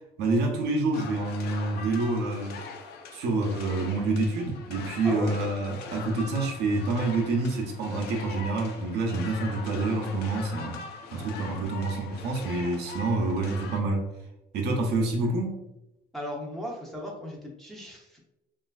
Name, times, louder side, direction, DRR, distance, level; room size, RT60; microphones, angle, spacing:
voice 1, 0.2-2.6 3.1-10.8 11.1-14.1 14.5-15.7, right 2 dB, 75° right, 2 dB, 0.6 m, -27 dB
sound 1, 0.9-13.8, left 5 dB, 75° left, 0.4 m, -42 dB
voice 2, 5.0-5.4 16.1-18.2, equal, ahead, -3 dB, 0.6 m, -36 dB
3.1 x 2.4 x 2.3 m, 0.93 s
cardioid pair, 110°, 17 cm